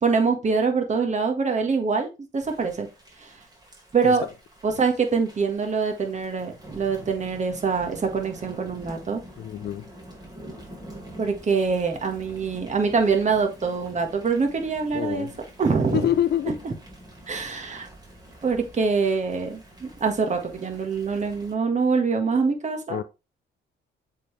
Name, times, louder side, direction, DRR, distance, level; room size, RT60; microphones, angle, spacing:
voice 1, 0.0-2.9 3.2-3.3 3.9-4.2 4.6-9.2 11.2-15.3 15.6-16.0 17.3-17.9 18.4-23.0, right 5 dB, 35° right, 1.6 m, -24 dB
Thunder / Rain, 2.4-21.5, right 1 dB, 20° right, 2.3 m, -46 dB
voice 2, 9.4-9.9 14.9-15.3 15.9-16.6 22.9-23.0, left 10 dB, 55° left, 0.7 m, -26 dB
7.4 x 4.0 x 3.3 m
cardioid pair, 90°, 20 cm